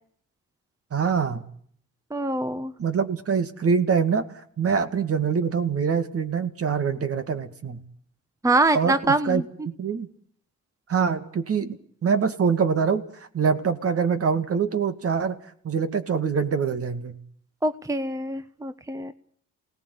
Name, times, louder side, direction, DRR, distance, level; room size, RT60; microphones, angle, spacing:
voice 1, 0.9-1.4 2.8-4.2 4.6-7.8 8.7-10.1 10.9-13.0 13.3-15.4 15.6-17.2, right 6 dB, 50° right, 9 dB, 2.4 m, -24 dB
voice 2, 2.1-2.7 8.4-9.4 17.6-19.1, right 2 dB, 10° right, 11 dB, 1.1 m, -24 dB
28.0 x 18.5 x 8.5 m, 0.64 s
cardioid pair, 90°, 30 cm